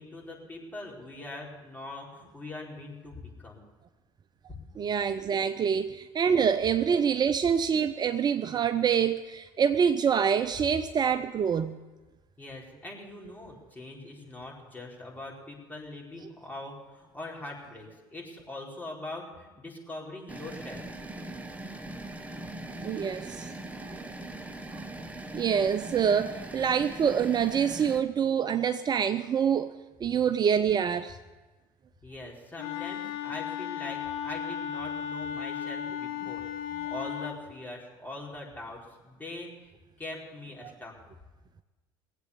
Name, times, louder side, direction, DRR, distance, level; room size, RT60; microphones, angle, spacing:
voice 1, 0.0-3.6 12.4-20.8 32.0-36.4 36.9-39.5 40.0-40.9, left 2 dB, 15° left, -2 dB, 4.5 m, -42 dB
voice 2, 4.8-11.8 22.8-23.5 23.8-24.0 24.7-24.8 25.3-29.7 30.0-31.2 40.6-40.7, right 7 dB, 35° right, 10 dB, 0.6 m, -26 dB
sound 1, 20.3-28.0, right 2 dB, 10° right, 1.4 m, -41 dB
Wind instrument woodwind instrument, 32.6-37.4, left 9 dB, 75° left, 1.1 m, -35 dB
19.5 x 8.4 x 6.9 m, 1.2 s
hypercardioid pair, 70°, 12 cm